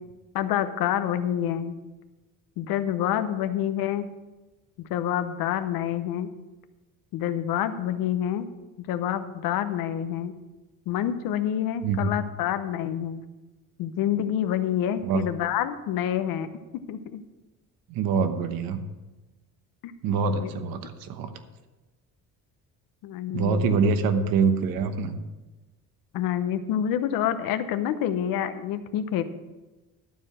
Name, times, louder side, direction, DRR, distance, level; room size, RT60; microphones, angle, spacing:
voice 1, 0.3-1.8 2.6-4.1 4.8-6.3 7.1-8.5 8.8-10.3 10.9-13.2 13.8-16.5 16.9-17.2 19.8-19.9 20.4-20.5 23.0-23.8 26.1-29.2, left 10 dB, 85° left, 11 dB, 0.9 m, -27 dB
voice 2, 11.8-12.2 15.0-15.2 17.9-18.8 20.0-21.3 23.3-25.2, right 5 dB, 90° right, 8 dB, 1.1 m, -25 dB
12.5 x 4.8 x 7.5 m, 1.1 s
cardioid pair, 165°, 34 cm